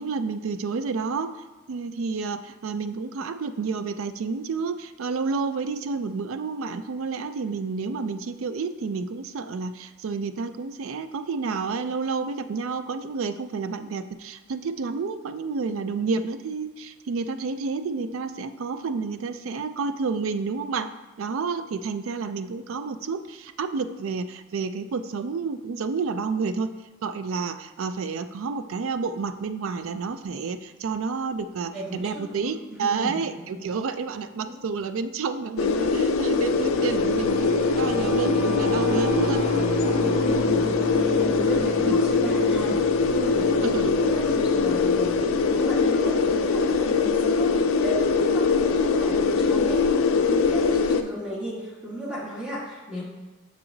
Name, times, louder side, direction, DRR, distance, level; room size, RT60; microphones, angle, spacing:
voice 1, 0.0-1.3 1.7-20.9 21.2-26.7 27.0-39.5 41.9-42.0 43.5-44.0, right 4 dB, 75° right, 11 dB, 0.4 m, -30 dB
voice 2, 32.3-33.4 34.4-34.5 40.2-42.8 43.1-49.8 50.1-53.0, equal, 5° right, -7 dB, 1.4 m, -35 dB
sound 1, 35.6-51.0, left 4 dB, 75° left, 0.4 m, -22 dB
Singing / Musical instrument, 36.0-45.7, right 1 dB, 30° right, 0.8 m, -34 dB
6.8 x 5.7 x 2.7 m, 1.2 s
head